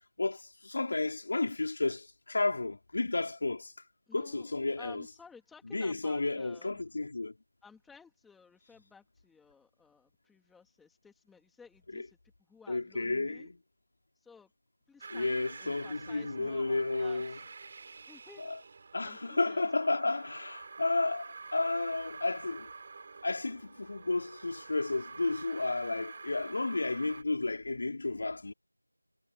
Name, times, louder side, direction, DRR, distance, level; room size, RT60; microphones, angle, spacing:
voice 1, 0.2-3.7 4.1-5.0 5.7-7.3 11.9-12.0 12.7-13.6 15.1-17.4 18.4-18.6 18.9-22.7 23.2-28.5, left 2 dB, 35° left, 4.7 m, -32 dB
voice 2, 4.1-6.8 7.6-12.2 12.5-13.5 14.2-14.5 14.9-17.4 18.1-18.5 19.0-19.7, left 5 dB, ahead, 2.7 m, -56 dB
sound 1, 15.0-27.2, right 4 dB, 25° right, 5.5 m, -48 dB
figure-of-eight pair, 175°, 0 cm